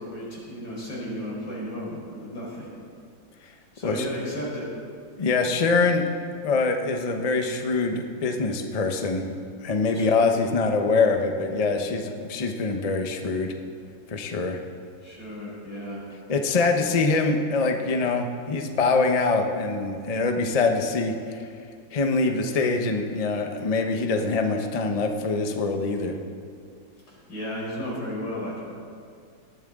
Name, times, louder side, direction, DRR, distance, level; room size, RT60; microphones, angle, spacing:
voice 1, 0.0-2.7 3.7-4.7 9.9-10.3 15.0-16.1 27.1-28.6, equal, 80° left, -5 dB, 5.5 m, -34 dB
voice 2, 5.2-6.0 6.4-9.3 9.6-13.5 14.1-14.6 16.3-21.4 21.9-26.1, left 3 dB, 35° left, 4 dB, 0.6 m, -24 dB
19.5 x 12.5 x 3.7 m, 2.2 s
omnidirectional pair, 2.1 m